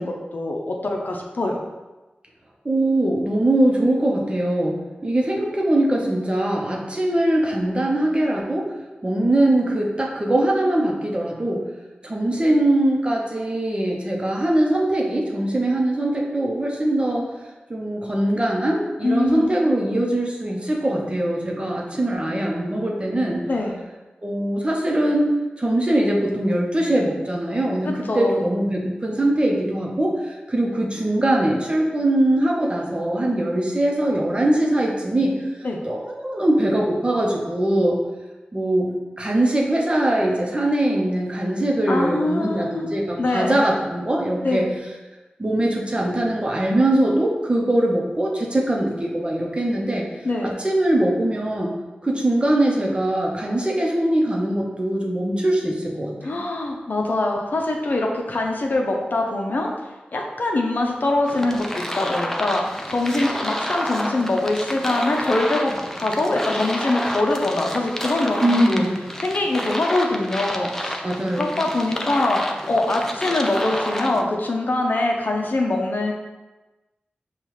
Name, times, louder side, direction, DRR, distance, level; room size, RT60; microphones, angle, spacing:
voice 1, 0.0-1.6 19.0-19.5 23.5-23.8 28.1-28.4 35.6-35.8 41.9-42.9 43.2-43.6 44.4-44.6 50.2-50.6 56.2-59.7 60.1-68.8 69.2-71.0 71.4-76.1, left 2 dB, 65° left, 1 dB, 0.6 m, -23 dB
voice 2, 2.6-8.8 9.0-11.6 12.0-17.3 17.7-23.4 24.2-25.3 25.6-35.5 35.8-38.0 38.5-44.7 45.4-50.1 50.4-51.7 52.0-56.4 68.4-68.9 71.0-71.6, right 1 dB, 30° right, -1 dB, 0.8 m, -22 dB
sound 1, 61.2-74.2, equal, 10° left, 0.5 m, -29 dB
5.4 x 2.4 x 3.1 m, 1.1 s
cardioid pair, 45°, 3 cm